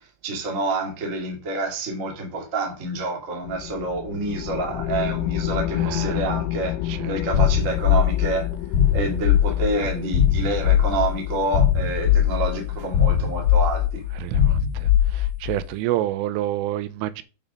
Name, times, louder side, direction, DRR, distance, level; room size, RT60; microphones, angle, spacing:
voice 1, 0.2-6.8 7.0-8.5 8.9-14.0, right 2 dB, 30° right, 1.4 m, -28 dB
sound 1, 3.4-13.5, left 13 dB, 90° left, 3.1 m, -31 dB
voice 2, 5.8-6.2 7.0-7.1 14.2-14.6 15.1-17.2, right 14 dB, 90° right, 3.3 m, -27 dB
sound 2, 7.3-15.6, left 10 dB, 70° left, 2.1 m, -20 dB
8.7 x 5.3 x 5.4 m
omnidirectional pair, 5.6 m